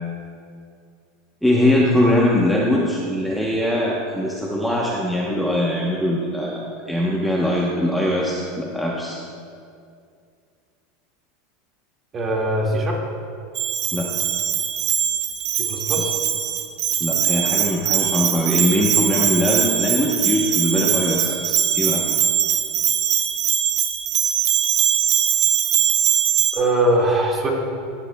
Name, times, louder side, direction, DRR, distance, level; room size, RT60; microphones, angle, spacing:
voice 1, 1.4-9.2 13.9-14.1 17.0-22.0, left 1 dB, ahead, -5 dB, 1.0 m, -21 dB
voice 2, 12.1-13.0 15.6-16.1 26.5-27.5, right 1 dB, 25° right, -2 dB, 2.0 m, -21 dB
Bell, 13.5-26.5, right 10 dB, 45° right, 0.9 m, -21 dB
16.0 x 9.8 x 2.3 m, 2.3 s
supercardioid pair, 145°, 0 cm